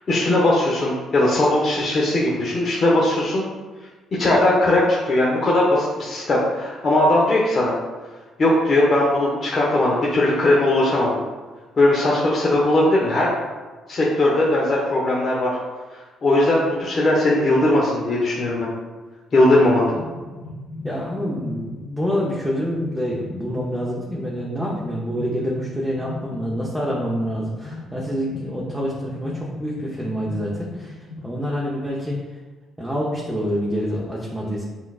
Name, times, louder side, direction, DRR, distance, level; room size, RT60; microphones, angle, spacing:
voice 1, 0.1-3.5 4.2-7.7 8.4-11.2 11.8-13.3 13.9-15.5 15.9-18.7 19.3-19.9, left 1 dB, 45° left, -5 dB, 0.7 m, -19 dB
sound 1, 19.9-31.3, left 2 dB, 70° left, 1.2 m, -37 dB
voice 2, 20.8-30.9 31.2-32.2 32.8-34.6, equal, 5° right, -4 dB, 0.7 m, -27 dB
5.6 x 2.4 x 2.3 m, 1.3 s
supercardioid pair, 65°, 0 cm